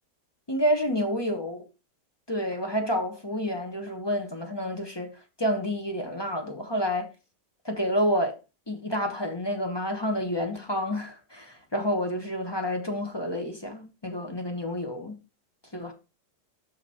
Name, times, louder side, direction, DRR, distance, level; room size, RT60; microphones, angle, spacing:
voice 1, 0.5-1.6 2.3-7.1 7.6-8.3 8.7-15.2 15.7-15.9, equal, 20° left, 1.0 m, -29 dB
6.0 x 5.9 x 4.3 m
omnidirectional pair, 1.8 m